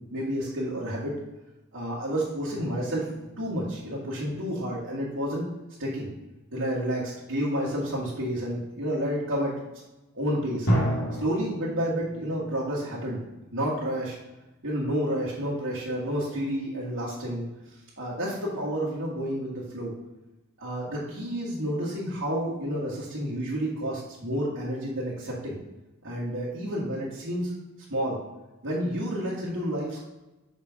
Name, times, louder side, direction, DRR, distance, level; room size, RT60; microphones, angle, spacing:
voice 1, 0.1-1.1 1.7-3.1 3.4-5.4 5.8-6.1 6.5-9.7 10.1-10.7 11.1-13.2 13.5-14.2 14.6-17.4 18.0-19.9 20.6-25.6 26.0-27.5 27.9-28.2 28.6-30.1, equal, 65° right, -10 dB, 1.9 m, -30 dB
sound 1, 2.5-5.5 6.1-6.4 10.7-15.0, equal, 80° left, 2.1 m, -34 dB
6.6 x 5.5 x 3.6 m, 1.0 s
head